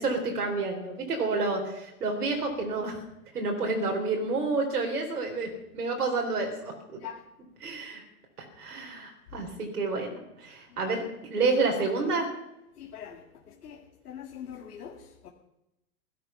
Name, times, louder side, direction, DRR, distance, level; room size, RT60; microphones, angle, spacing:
voice 1, 0.0-3.0 3.3-6.7 7.6-8.0 8.6-12.3, right 3 dB, 90° right, 1 dB, 4.2 m, -29 dB
voice 2, 12.8-13.2 13.6-13.8 14.1-15.0 15.2-15.3, left 9 dB, 80° left, 0 dB, 2.3 m, -41 dB
16.5 x 15.0 x 5.8 m, 0.88 s
hypercardioid pair, 110°, 45 cm